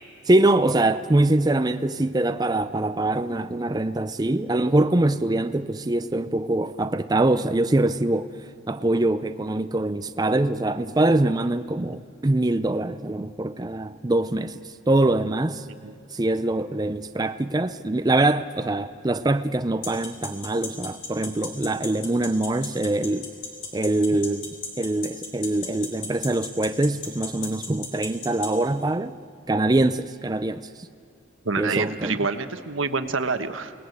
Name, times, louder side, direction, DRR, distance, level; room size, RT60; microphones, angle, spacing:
voice 1, 0.3-8.3 8.7-15.6 16.1-23.3 23.7-24.4 24.8-29.1 29.5-30.7 31.6-32.2, right 2 dB, 20° right, 0.5 m, -23 dB
sound 1, 19.8-28.5, left 5 dB, 65° left, 4.3 m, -33 dB
voice 2, 31.4-33.7, right 4 dB, 85° right, 1.3 m, -27 dB
29.0 x 19.0 x 8.0 m
head